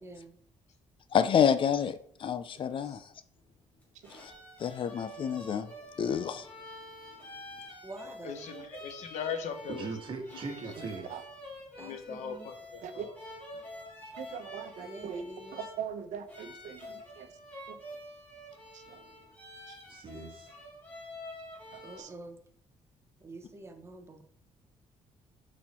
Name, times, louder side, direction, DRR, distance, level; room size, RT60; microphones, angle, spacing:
voice 1, 0.0-0.4 7.8-8.5 11.8-12.5 14.8-15.6 21.8-22.4 23.2-24.2, right 2 dB, 20° right, 0.9 m, -47 dB
voice 2, 1.1-3.0 4.2-4.3 4.6-5.7 6.0-6.4, left 8 dB, 45° left, 0.5 m, -28 dB
sound 1, 3.8-22.0, left 1 dB, 10° left, 2.4 m, -47 dB
voice 3, 8.2-9.9 11.8-12.8, left 7 dB, 70° left, 1.3 m, -38 dB
voice 4, 9.7-11.1 19.9-20.5, right 4 dB, 45° right, 1.6 m, -39 dB
voice 5, 10.8-11.2 12.8-13.1 14.2-15.2 15.5-17.3 17.7-17.8 18.7-19.0 19.7-19.8 21.7-22.1, right 8 dB, 85° right, 0.9 m, -42 dB
10.0 x 4.3 x 4.4 m
cardioid pair, 155°, 12 cm